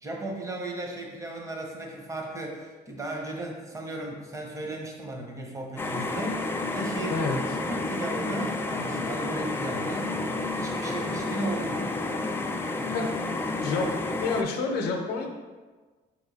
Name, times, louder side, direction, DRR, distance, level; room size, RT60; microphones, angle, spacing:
voice 1, 0.0-6.4 6.7-10.1 10.5-11.9, right 2 dB, 20° right, 0 dB, 0.8 m, -35 dB
sound 1, 5.8-14.4, left 2 dB, 15° left, 0.3 m, -30 dB
voice 2, 14.2-15.3, left 4 dB, 75° left, 2 dB, 0.6 m, -28 dB
4.3 x 3.0 x 4.0 m, 1.3 s
cardioid pair, 110°, 17 cm